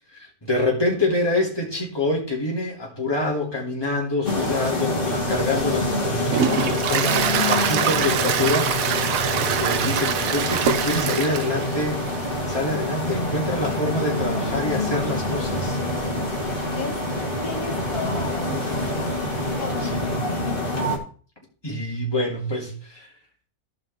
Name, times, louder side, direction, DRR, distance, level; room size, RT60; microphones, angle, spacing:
voice 1, 0.1-15.8 19.8-20.1 21.6-23.1, left 2 dB, 15° left, -2 dB, 2.9 m, -26 dB
sound 1, 4.2-21.0, left 1 dB, 35° left, 2.3 m, -26 dB
Toilet flush, 5.3-20.0, right 9 dB, 70° right, 1.1 m, -28 dB
sound 2, 8.8-19.4, right 5 dB, 85° right, 1.5 m, -41 dB
voice 2, 17.4-19.0 19.6-19.9, left 4 dB, 75° left, 3 dB, 1.8 m, -34 dB
15.5 x 5.5 x 3.5 m, 0.42 s
omnidirectional pair, 1.6 m